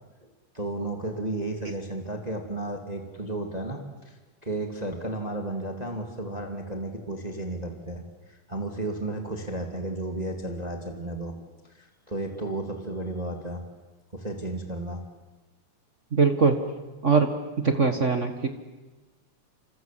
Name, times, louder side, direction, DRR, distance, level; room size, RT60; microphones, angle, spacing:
voice 1, 0.5-4.2 4.4-8.0 8.3-13.7 14.1-15.0, right 2 dB, 15° right, 3 dB, 2.2 m, -33 dB
voice 2, 16.1-16.6 17.0-17.3 17.6-18.5, right 4 dB, 40° right, 7 dB, 1.1 m, -21 dB
28.5 x 27.0 x 7.6 m, 1.2 s
omnidirectional pair, 3.7 m